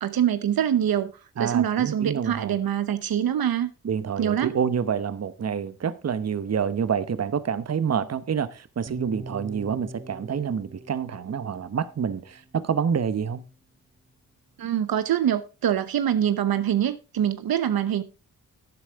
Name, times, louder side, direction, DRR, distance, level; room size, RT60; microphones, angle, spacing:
voice 1, 0.0-1.1 1.4-3.7 4.2-4.6 14.6-18.0, right 10 dB, 70° right, 0.8 m, -24 dB
voice 2, 1.4-2.5 3.8-13.4, right 7 dB, 40° right, 0.9 m, -27 dB
sound 1, 8.9-12.9, right 2 dB, 20° right, 1.7 m, -43 dB
12.0 x 8.9 x 3.5 m
cardioid pair, 55°, 38 cm